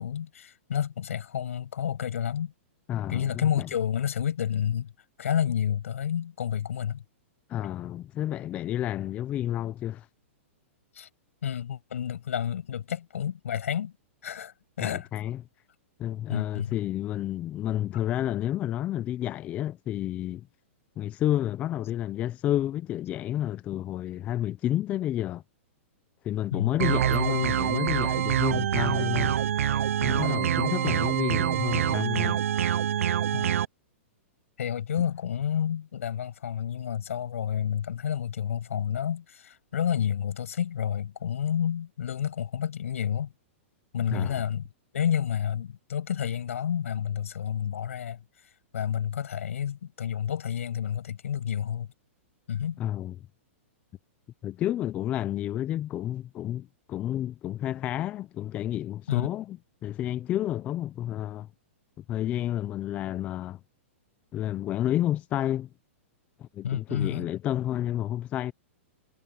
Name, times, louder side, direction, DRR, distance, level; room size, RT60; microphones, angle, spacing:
voice 1, 0.0-2.5 3.1-4.9 5.2-7.0 10.9-11.1 11.4-13.9 14.2-15.1 16.3-16.8 26.5-26.8 30.2-30.6 33.3-33.6 34.6-43.3 43.9-44.7 44.9-48.2 48.7-51.9 52.5-52.8 59.1-59.3 66.6-67.3, left 9 dB, 85° left, 6.6 m, -30 dB
voice 2, 2.9-3.7 7.5-10.1 14.8-15.4 16.0-20.5 21.0-25.4 26.2-29.4 30.0-32.4 44.1-44.4 52.8-53.1 54.4-59.6 59.8-61.5 62.0-63.6 64.3-65.7 66.4-68.5, left 12 dB, 20° left, 0.4 m, -30 dB
sound 1, 26.8-33.6, right 10 dB, 85° right, 0.5 m, -25 dB
hypercardioid pair, 160°, 7 cm